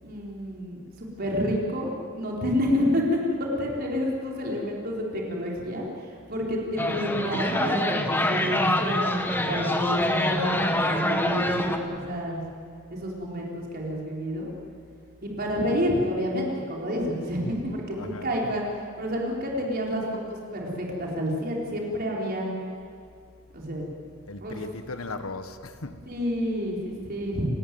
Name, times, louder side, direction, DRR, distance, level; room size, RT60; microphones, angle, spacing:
voice 1, 0.0-9.1 9.5-12.4 12.9-14.5 15.2-18.6 19.0-20.0 20.3-22.5 23.5-23.8 24.4-24.7 26.1-27.5, equal, 45° right, -2 dB, 4.6 m, -29 dB
sound 1, 6.8-11.8, left 1 dB, 10° left, 1.6 m, -25 dB
voice 2, 17.9-18.5 24.3-26.0, left 3 dB, 75° left, 8 dB, 1.5 m, -37 dB
30.0 x 14.5 x 9.5 m, 2.3 s
head